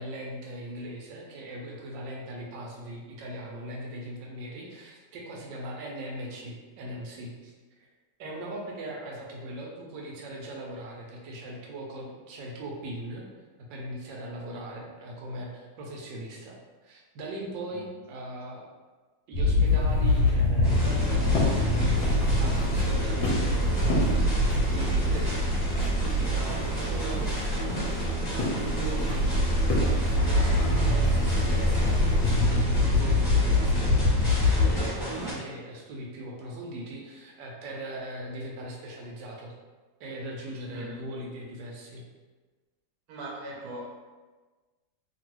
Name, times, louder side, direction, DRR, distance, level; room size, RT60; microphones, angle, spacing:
voice 1, 0.0-7.5 8.2-13.2 13.6-18.7 19.3-39.5 40.0-42.1, right 1 dB, 85° right, -1 dB, 1.3 m, -39 dB
sound 1, 19.3-34.8, left 1 dB, 70° left, 1.0 m, -24 dB
sound 2, 19.6-32.4, left 1 dB, 55° left, 0.8 m, -35 dB
Dr.Ruiner Slow Rhythm, 20.6-35.3, right 1 dB, 30° left, 1.0 m, -33 dB
voice 2, 40.7-41.1 43.1-43.9, right 2 dB, 65° right, -3 dB, 1.1 m, -40 dB
2.9 x 2.6 x 2.9 m, 1.3 s
omnidirectional pair, 1.9 m